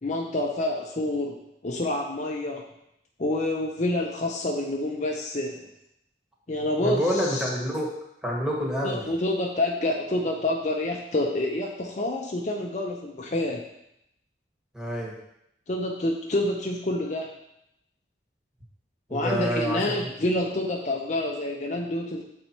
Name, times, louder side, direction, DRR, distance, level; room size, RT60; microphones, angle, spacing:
voice 1, 0.0-1.4 1.6-2.6 3.2-5.7 6.5-7.5 8.8-13.6 15.7-17.3 19.1-22.2, left 1 dB, 40° left, 1 dB, 0.6 m, -28 dB
voice 2, 6.8-7.9 8.2-9.1 14.7-15.1 19.1-20.1, equal, 5° right, -3 dB, 1.3 m, -27 dB
6.7 x 4.2 x 4.4 m, 0.79 s
head